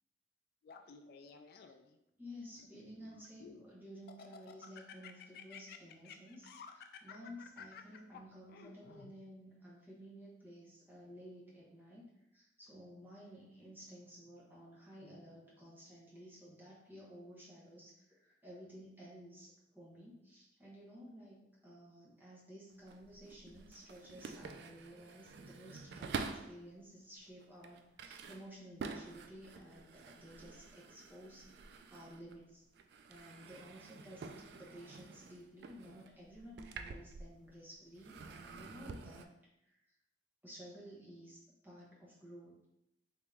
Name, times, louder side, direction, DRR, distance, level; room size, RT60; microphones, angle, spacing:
Laughter, 0.6-2.0 2.6-3.6 4.1-9.1, left 6 dB, 60° left, 0.3 m, -53 dB
voice 1, 2.2-12.1 12.3-32.6 33.1-39.3 39.6-39.9 40.4-42.6, equal, 10° right, -6 dB, 1.0 m, -54 dB
sound 1, 22.7-26.6 27.2-32.5 32.8-37.6 37.9-39.3, right 4 dB, 65° right, 0.3 m, -48 dB
3.6 x 2.9 x 3.3 m, 0.83 s
head